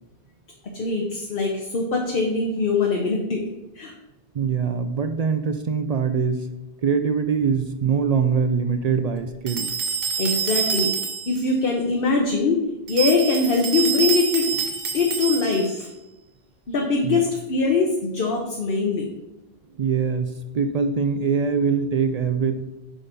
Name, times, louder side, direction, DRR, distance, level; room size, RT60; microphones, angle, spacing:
voice 1, 0.7-3.4 3.7-3.9 10.2-10.9 11.3-14.5 14.9-15.9 16.7-19.1, left 4 dB, 60° left, 0 dB, 1.0 m, -22 dB
voice 2, 4.3-6.5 6.8-9.7 17.0-17.2 19.7-22.6, right 6 dB, 55° right, 8 dB, 0.4 m, -23 dB
sound 1, 9.5-11.4 12.9-15.8, right 6 dB, 85° right, 1.2 m, -26 dB
5.7 x 5.0 x 5.2 m, 0.95 s
omnidirectional pair, 1.1 m